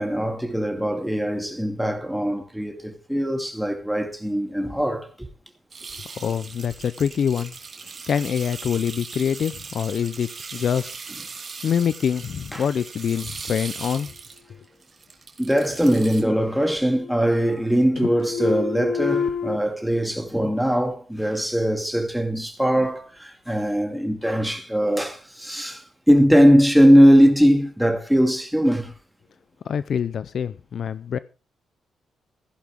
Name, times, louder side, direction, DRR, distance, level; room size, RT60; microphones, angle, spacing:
voice 1, 0.0-5.1 12.5-12.6 15.4-28.9, equal, ahead, 2.2 m, -20 dB
sound 1, 5.7-16.2, right 4 dB, 30° right, 2.6 m, -39 dB
voice 2, 6.1-7.6 8.1-11.0 11.6-14.1 29.6-31.2, left 8 dB, 50° left, 0.5 m, -25 dB
sound 2, 16.4-16.5 16.8-17.7 18.0-19.6, left 6 dB, 90° left, 0.9 m, -29 dB
15.5 x 11.0 x 3.6 m
cardioid pair, 155°, 0 cm